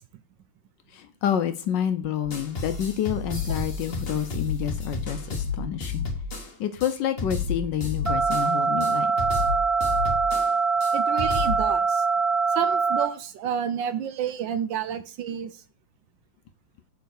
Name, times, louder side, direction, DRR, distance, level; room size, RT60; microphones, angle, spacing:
voice 1, 0.9-6.1 6.6-9.4, left 9 dB, 70° left, 1.1 m, -28 dB
sound 1, 2.2-6.5 6.8-6.9 7.2-8.5 8.8-8.9 9.2-10.5 10.8-10.9 11.2-11.6, left 4 dB, 35° left, 1.2 m, -31 dB
sound 2, 8.1-13.1, right 5 dB, 45° right, 0.4 m, -23 dB
voice 2, 10.9-12.1 12.5-15.6, right 9 dB, 75° right, 1.2 m, -30 dB
7.0 x 4.4 x 6.4 m
omnidirectional pair, 2.3 m